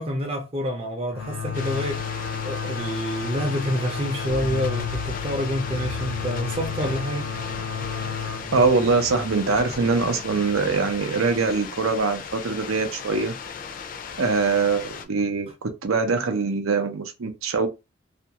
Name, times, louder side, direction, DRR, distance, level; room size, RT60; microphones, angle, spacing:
voice 1, 0.0-2.0 2.4-7.3, equal, 30° right, 0.5 m, -28 dB
sound 1, 1.1-10.6, left 7 dB, 85° left, 0.6 m, -32 dB
sound 2, 1.5-15.0, left 6 dB, 40° left, 0.4 m, -37 dB
sound 3, 4.3-11.2, right 1 dB, 60° right, 0.8 m, -41 dB
voice 2, 8.5-13.3 14.2-17.7, right 4 dB, 90° right, 0.6 m, -23 dB
2.5 x 2.2 x 2.8 m
head